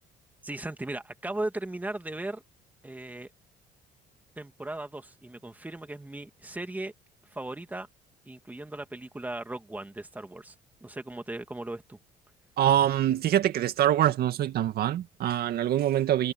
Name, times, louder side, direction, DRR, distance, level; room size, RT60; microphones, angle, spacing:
voice 1, 0.4-2.4 2.8-3.3 4.4-6.9 7.2-7.9 8.3-10.5 10.8-12.0, right 2 dB, 10° right, 2.2 m, -37 dB
voice 2, 12.6-16.3, right 11 dB, 65° right, 2.0 m, -24 dB
cardioid pair, 110°, 17 cm